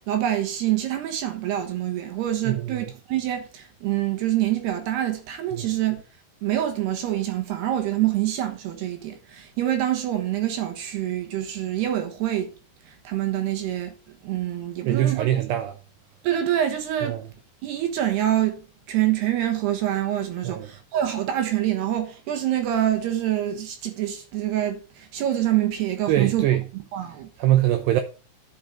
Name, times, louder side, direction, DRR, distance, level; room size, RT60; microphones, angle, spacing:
voice 1, 0.0-6.0 6.4-12.5 12.9-13.9 14.2-15.3 16.2-17.2 17.6-18.6 18.9-26.5 26.7-27.3, right 12 dB, 70° right, 2.8 m, -26 dB
voice 2, 2.5-2.8 5.5-5.7 14.9-15.8 17.0-17.2 20.4-20.7 26.1-26.6 27.4-28.0, right 13 dB, 90° right, 2.4 m, -22 dB
10.5 x 6.1 x 4.3 m
omnidirectional pair, 5.9 m